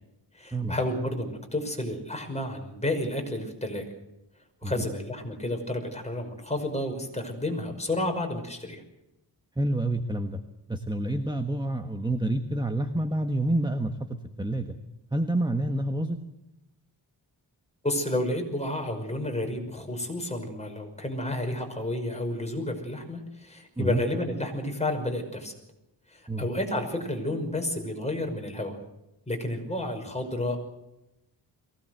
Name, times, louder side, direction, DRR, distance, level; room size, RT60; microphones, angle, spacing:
voice 1, 0.3-3.8 4.6-8.8 17.8-25.5 26.1-28.8 29.3-30.6, left 1 dB, 15° left, 3 dB, 5.7 m, -31 dB
voice 2, 9.6-10.4 10.7-13.9 14.4-14.7 15.1-16.2 23.8-24.0 26.3-26.4, right 1 dB, 10° right, 6 dB, 1.3 m, -28 dB
23.0 x 18.0 x 7.9 m, 0.91 s
wide cardioid pair, 95°, 41 cm